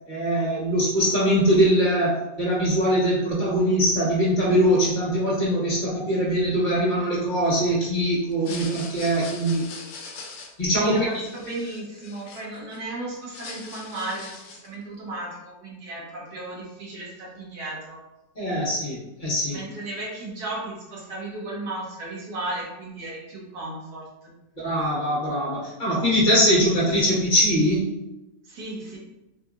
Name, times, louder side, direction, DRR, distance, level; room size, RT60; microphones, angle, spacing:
voice 1, 0.1-9.6 10.6-11.1 18.3-19.6 24.6-27.9, equal, 30° left, -7 dB, 1.5 m, -22 dB
sound 1, 8.3-12.8 13.1-14.7, left 4 dB, 65° left, 0.7 m, -41 dB
voice 2, 8.5-8.8 10.8-18.0 19.5-24.3 28.5-29.0, right 2 dB, 80° right, -5 dB, 1.6 m, -35 dB
4.1 x 2.8 x 2.4 m, 0.96 s
omnidirectional pair, 1.7 m